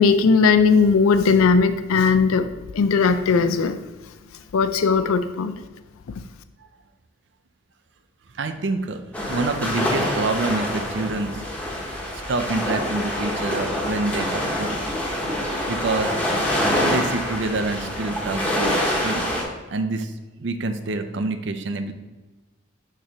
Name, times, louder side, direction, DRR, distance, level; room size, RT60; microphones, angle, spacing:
voice 1, 0.0-2.5 2.7-3.8 4.5-5.5, left 5 dB, 85° left, 10 dB, 0.4 m, -18 dB
voice 2, 8.4-9.0 9.3-11.4 12.3-14.8 15.7-16.1 16.8-19.3 19.7-20.1 20.4-21.9, right 3 dB, 60° right, 8 dB, 0.5 m, -27 dB
sound 1, 9.1-19.4, equal, 5° left, 1.1 m, -25 dB
6.6 x 3.2 x 5.8 m, 1.2 s
head